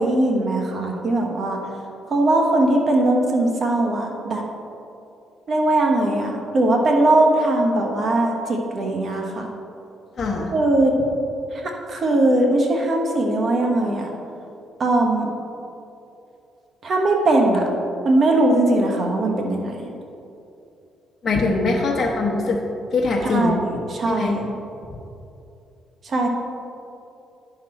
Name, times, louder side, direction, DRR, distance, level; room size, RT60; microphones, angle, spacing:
voice 1, 0.0-1.6 2.1-4.4 5.5-9.5 10.5-10.9 11.9-14.1 14.8-15.3 16.8-17.7 18.0-19.7 23.2-24.5 26.1-26.3, right 2 dB, 50° right, 1 dB, 1.2 m, -20 dB
voice 2, 10.2-10.5 21.2-22.6 22.9-23.6 24.1-24.4, left 3 dB, 45° left, -3 dB, 1.0 m, -22 dB
10.0 x 6.0 x 4.4 m, 2.7 s
cardioid pair, 90°, 0 cm